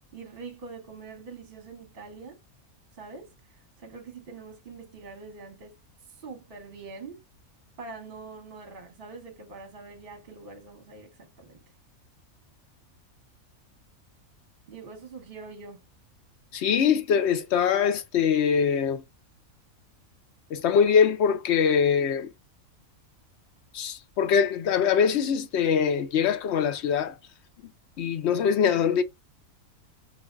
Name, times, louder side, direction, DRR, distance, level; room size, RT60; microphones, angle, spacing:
voice 1, 0.1-2.4 2.9-3.3 3.8-5.8 6.2-7.2 7.8-11.6 14.7-15.8, right 4 dB, 45° right, 1.1 m, -44 dB
voice 2, 16.5-19.0 20.5-22.3 23.7-27.2 28.0-29.0, left 7 dB, 65° left, 0.7 m, -23 dB
3.4 x 2.6 x 2.3 m
omnidirectional pair, 1.5 m